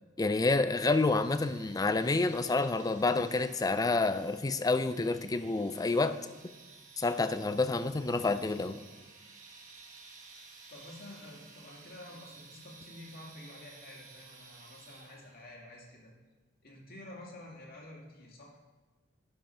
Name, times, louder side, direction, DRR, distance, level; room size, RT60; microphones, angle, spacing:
voice 1, 0.2-6.2 7.0-8.8, left 3 dB, 20° left, 11 dB, 0.4 m, -28 dB
sound 1, 0.7-15.5, right 4 dB, 40° right, 1.1 m, -55 dB
voice 2, 10.7-16.1 16.6-18.6, left 1 dB, 55° left, -2 dB, 2.1 m, -50 dB
10.5 x 5.5 x 4.3 m, 1.3 s
head